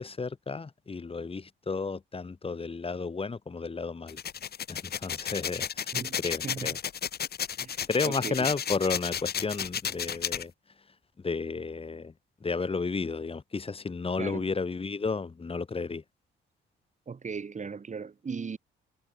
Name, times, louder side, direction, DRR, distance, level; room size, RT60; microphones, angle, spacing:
voice 1, 0.0-4.2 4.7-5.9 6.2-6.8 7.9-10.5 11.2-12.1 12.4-16.0, left 4 dB, 30° left, 2.9 m, -32 dB
sound 1, 4.1-10.4, left 8 dB, 50° left, 1.9 m, -33 dB
voice 2, 6.4-6.7 7.6-8.5 14.2-14.4 17.1-18.6, right 5 dB, 35° right, 5.0 m, -37 dB
cardioid pair, 90°, 20 cm